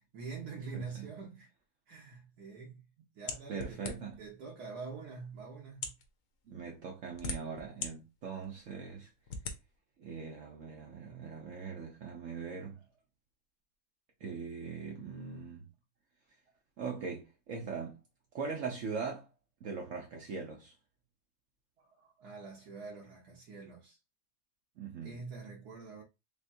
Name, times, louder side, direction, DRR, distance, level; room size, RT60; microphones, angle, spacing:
voice 1, 0.1-1.5 1.9-2.8 3.1-3.8 4.2-5.9 21.8-24.0 25.0-26.0, right 4 dB, 80° right, 1.4 m, -45 dB
voice 2, 0.7-1.1 3.5-4.2 6.5-9.1 10.0-12.8 14.2-15.7 16.8-18.0 18.3-19.3 19.6-20.7 24.8-25.1, right 5 dB, 60° right, 0.9 m, -41 dB
sound 1, 3.3-4.3 5.0-5.1 5.7-6.1 6.8-7.9 8.4-8.5 9.3-9.6, left 4 dB, 65° left, 1.0 m, -39 dB
3.6 x 3.2 x 2.6 m
omnidirectional pair, 1.7 m